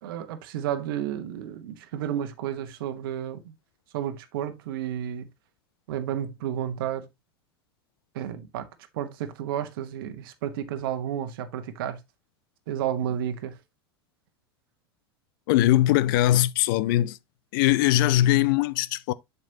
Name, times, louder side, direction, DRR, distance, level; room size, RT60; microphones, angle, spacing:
voice 1, 0.0-3.5 3.9-5.3 5.9-7.1 8.1-8.7 8.9-12.0 12.7-13.6, right 10 dB, 60° right, 1.2 m, -31 dB
voice 2, 15.5-17.2 17.5-19.1, left 14 dB, 55° left, 0.6 m, -21 dB
7.5 x 6.8 x 2.8 m
figure-of-eight pair, 85°, 13 cm